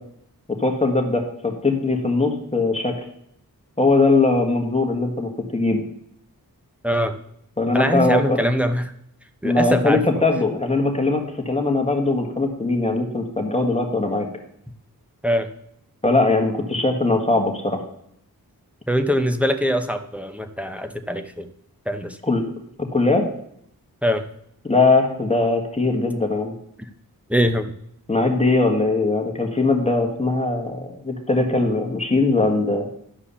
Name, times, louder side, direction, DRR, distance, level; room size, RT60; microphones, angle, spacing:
voice 1, 0.5-2.9 3.8-5.8 7.6-8.4 9.4-14.3 16.0-17.8 22.2-22.4 22.8-23.2 24.6-26.5 28.1-32.9, left 2 dB, 15° left, 2 dB, 1.6 m, -20 dB
voice 2, 6.8-7.2 7.7-8.8 9.4-10.0 15.2-15.5 18.9-21.5 21.9-22.2 24.0-24.2 27.3-27.7, equal, 5° right, 7 dB, 0.8 m, -22 dB
11.5 x 4.9 x 7.1 m, 0.72 s
wide cardioid pair, 85°, 38 cm